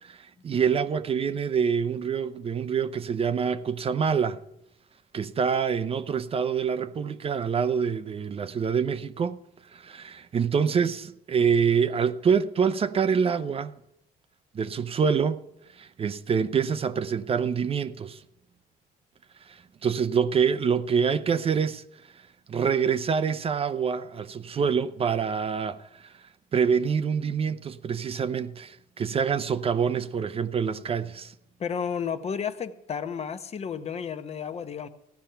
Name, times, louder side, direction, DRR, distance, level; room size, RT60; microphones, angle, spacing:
voice 1, 0.0-4.4 5.1-9.4 9.7-13.8 14.5-15.4 15.7-18.2 19.4-21.8 22.5-26.1 26.5-31.3, right 6 dB, 35° right, 0.6 m, -26 dB
voice 2, 31.6-34.9, left 7 dB, 40° left, 0.8 m, -32 dB
15.5 x 10.5 x 5.6 m
cardioid pair, 110°, 17 cm